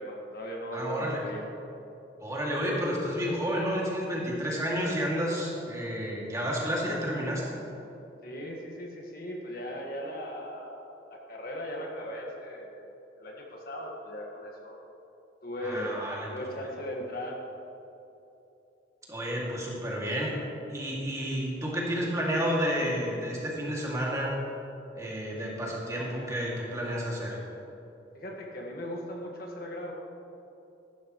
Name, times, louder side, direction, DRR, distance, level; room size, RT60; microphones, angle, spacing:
voice 1, 0.0-1.4 8.2-10.8 11.1-12.9 13.2-14.7 15.4-15.9 16.3-17.4 28.1-29.9, equal, 55° left, -1 dB, 1.7 m, -38 dB
voice 2, 0.7-1.3 2.2-7.6 15.6-16.3 19.1-20.4 20.7-24.4 24.9-27.4, equal, 20° right, -4 dB, 2.3 m, -31 dB
14.5 x 12.0 x 3.1 m, 2.9 s
head